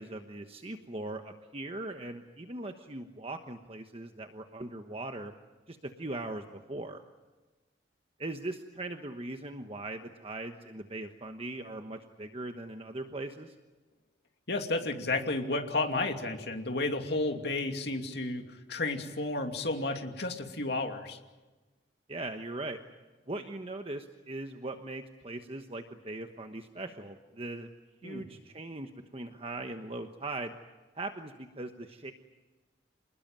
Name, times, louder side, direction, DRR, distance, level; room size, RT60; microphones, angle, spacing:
voice 1, 0.0-5.3 5.7-7.0 8.2-13.5 22.1-22.8 23.3-27.7 28.0-30.5 30.9-32.1, right 2 dB, 35° right, 6 dB, 1.2 m, -40 dB
voice 2, 14.5-21.2 28.0-28.2, left 2 dB, 65° left, 4 dB, 2.7 m, -32 dB
28.0 x 20.0 x 9.1 m, 1.2 s
head